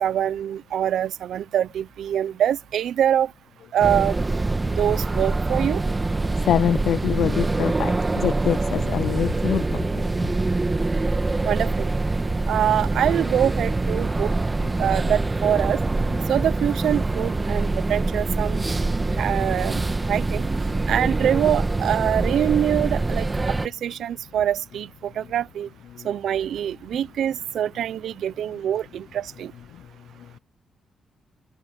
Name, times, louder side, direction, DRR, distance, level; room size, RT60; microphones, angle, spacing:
voice 1, 0.0-3.3 3.7-4.2 4.7-5.8 11.4-11.9 12.5-14.3 14.8-15.8 16.3-18.6 19.2-19.8 20.1-20.5 20.9-23.3 23.8-25.7 26.0-29.5, right 10 dB, 75° right, 0.8 m, -24 dB
sound 1, 3.8-23.7, right 3 dB, 25° right, 1.8 m, -24 dB
voice 2, 6.4-10.0 20.7-20.8, left 10 dB, 75° left, 0.5 m, -25 dB
open air
cardioid pair, 75°, 0 cm